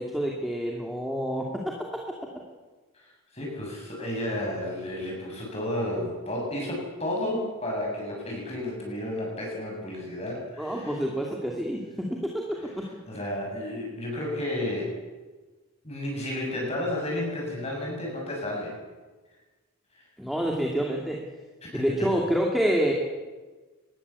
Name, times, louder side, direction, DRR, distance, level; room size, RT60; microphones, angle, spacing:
voice 1, 0.0-1.7 10.6-12.9 20.2-21.2 21.7-22.9, equal, ahead, -1 dB, 2.7 m, -28 dB
voice 2, 2.9-11.0 12.6-12.7 13.1-14.9 15.8-18.7 21.6-22.1, left 1 dB, 30° left, -2 dB, 7.5 m, -32 dB
24.0 x 19.5 x 8.5 m, 1.3 s
head